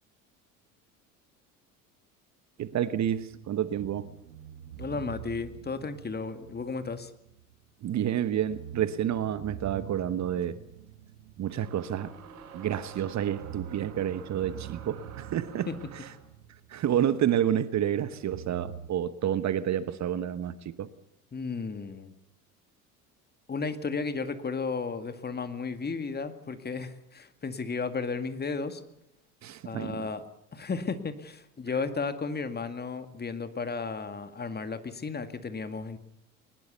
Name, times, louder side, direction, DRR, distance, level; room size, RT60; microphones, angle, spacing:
voice 1, 2.6-4.1 7.8-10.5 11.4-12.1 12.5-15.7 16.7-20.9 29.4-30.0, right 10 dB, 40° right, 14 dB, 1.3 m, -29 dB
sound 1, 3.0-7.7 8.0-8.1 8.4-12.7 13.2-17.5 18.2-18.9, right 10 dB, 75° right, 1.7 m, -46 dB
voice 2, 4.8-7.1 15.7-15.8 21.3-22.1 23.5-28.8 29.6-30.3 30.5-36.0, left 4 dB, 20° left, 10 dB, 2.1 m, -34 dB
sound 2, 11.5-16.3, right 7 dB, 55° right, 6.6 m, -48 dB
21.5 x 20.0 x 6.8 m, 0.80 s
hypercardioid pair, 70°, 44 cm